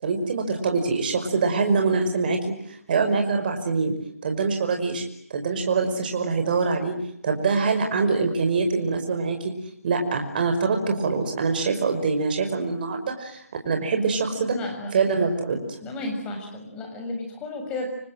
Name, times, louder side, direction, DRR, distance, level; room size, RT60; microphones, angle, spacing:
voice 1, 0.0-2.4 2.9-3.9 4.2-5.0 5.3-6.9 7.2-9.5 9.8-14.6 14.9-15.6, right 4 dB, 35° right, 5 dB, 5.4 m, -24 dB
voice 2, 14.5-14.9 15.8-17.9, left 2 dB, 10° left, 3 dB, 6.9 m, -33 dB
30.0 x 25.5 x 7.9 m, 0.69 s
figure-of-eight pair, 160°, 8 cm